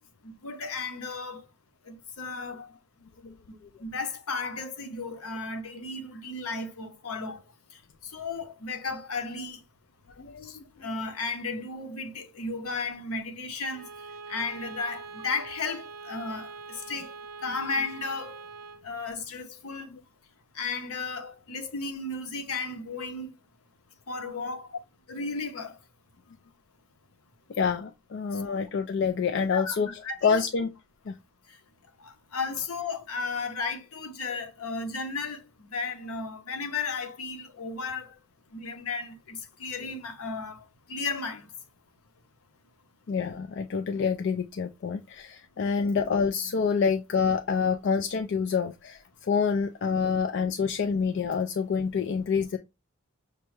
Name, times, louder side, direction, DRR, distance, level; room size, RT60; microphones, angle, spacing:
voice 1, 0.2-1.5 1.9-2.7 3.8-7.4 8.0-9.6 10.4-13.9 14.3-17.1 17.4-18.4 18.8-19.9 20.5-23.3 24.1-24.7 25.1-25.8 28.3-28.4 29.5-30.4 32.0-38.1 38.5-41.5, left 4 dB, 80° left, 0.8 m, -34 dB
voice 2, 10.2-10.6 19.9-20.0 27.5-29.9 30.2-30.7 31.1-31.2 43.1-52.6, left 5 dB, 50° left, 0.3 m, -27 dB
Bowed string instrument, 13.7-18.9, right 4 dB, 65° right, 0.5 m, -43 dB
6.0 x 2.2 x 3.1 m
head